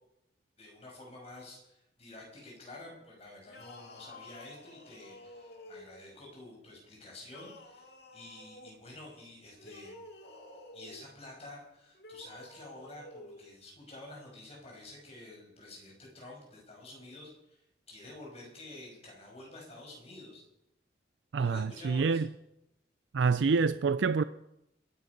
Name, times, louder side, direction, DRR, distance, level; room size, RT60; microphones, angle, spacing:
voice 1, 0.6-9.9 10.7-20.4 21.4-22.3, left 2 dB, 35° left, 6.0 m, -49 dB
sound 1, 3.4-6.2 7.2-8.8 9.5-11.1 11.9-13.4, left 1 dB, 65° left, 2.1 m, -51 dB
voice 2, 21.3-22.3 23.1-24.2, right 5 dB, 90° right, 0.4 m, -27 dB
22.0 x 9.7 x 5.3 m
head